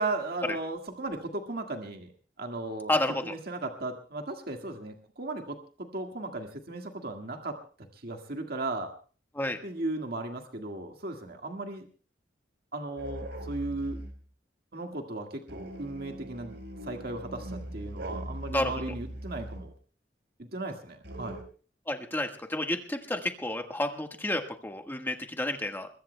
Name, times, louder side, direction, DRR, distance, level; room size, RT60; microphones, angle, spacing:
voice 1, 0.0-2.1 2.4-7.6 7.9-8.9 9.6-11.9 12.7-14.0 14.7-16.6 16.8-19.7 20.4-21.4, right 2 dB, 55° right, 3 dB, 1.8 m, -36 dB
voice 2, 2.9-3.3 9.3-9.6 18.5-18.7 21.9-25.9, left 1 dB, 10° left, 4 dB, 1.5 m, -30 dB
sound 1, 13.0-14.2 15.5-19.7 21.0-21.4, right 1 dB, 70° right, 4.6 m, -40 dB
23.5 x 22.0 x 2.2 m, 0.40 s
head